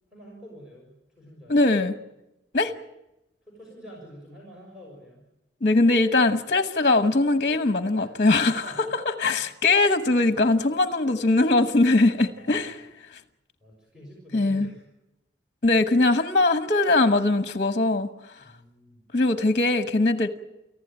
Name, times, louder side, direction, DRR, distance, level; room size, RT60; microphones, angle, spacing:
voice 1, 0.1-1.6 3.5-5.3 8.0-8.9 12.3-12.7 13.6-14.8 18.4-19.0, equal, 5° right, -2 dB, 6.4 m, -47 dB
voice 2, 1.5-2.0 2.5-2.7 5.6-8.6 9.2-12.8 14.3-14.7 15.6-18.1 19.1-20.3, left 2 dB, 45° left, 8 dB, 1.1 m, -21 dB
30.0 x 15.0 x 8.9 m, 0.94 s
head